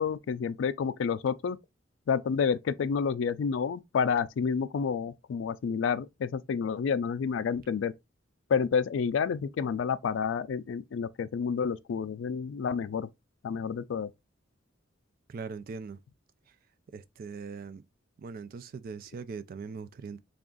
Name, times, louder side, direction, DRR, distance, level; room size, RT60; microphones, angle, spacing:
voice 1, 0.0-1.6 2.1-7.9 8.5-13.1 13.4-14.1, left 6 dB, 70° left, 0.3 m, -29 dB
voice 2, 15.3-16.0 16.9-17.8 18.2-20.2, right 5 dB, 50° right, 0.3 m, -40 dB
3.4 x 2.4 x 3.7 m
head